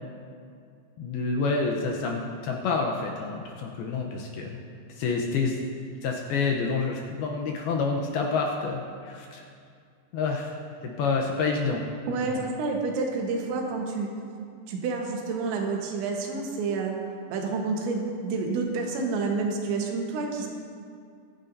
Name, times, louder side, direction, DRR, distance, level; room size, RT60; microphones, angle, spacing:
voice 1, 1.0-4.6 5.0-5.6 6.0-9.5 10.1-10.6 10.8-11.8 12.2-12.4, left 4 dB, 80° left, 1 dB, 2.3 m, -28 dB
voice 2, 12.1-14.1 14.7-17.0 17.3-20.5, right 4 dB, 85° right, 1 dB, 3.6 m, -29 dB
24.0 x 9.8 x 2.7 m, 2.3 s
omnidirectional pair, 5.2 m